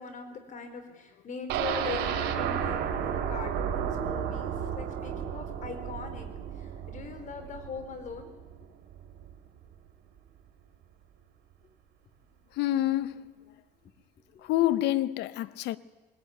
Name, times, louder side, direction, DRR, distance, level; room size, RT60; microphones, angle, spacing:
voice 1, 0.0-6.3 6.6-8.3 14.3-14.4, left 5 dB, 50° left, 4.6 m, -41 dB
sound 1, 1.5-9.4 9.7-9.8 10.2-10.3, right 8 dB, 85° right, 2.8 m, -33 dB
voice 2, 12.6-13.3 14.4-15.8, left 14 dB, 85° left, 0.9 m, -27 dB
20.5 x 20.5 x 9.8 m
cardioid pair, 110°, 17 cm